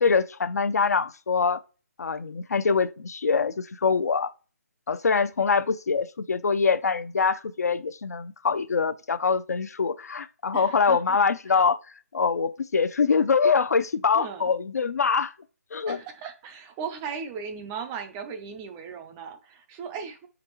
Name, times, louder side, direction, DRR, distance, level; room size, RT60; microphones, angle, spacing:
voice 1, 0.0-1.6 2.0-4.3 4.9-11.8 12.1-15.3 15.7-16.0, left 5 dB, 75° left, 0.7 m, -24 dB
voice 2, 10.5-11.2 11.5-11.6 14.1-14.5 15.9-20.3, right 6 dB, 10° right, 0.3 m, -37 dB
7.6 x 5.2 x 3.0 m
hypercardioid pair, 170°, 9 cm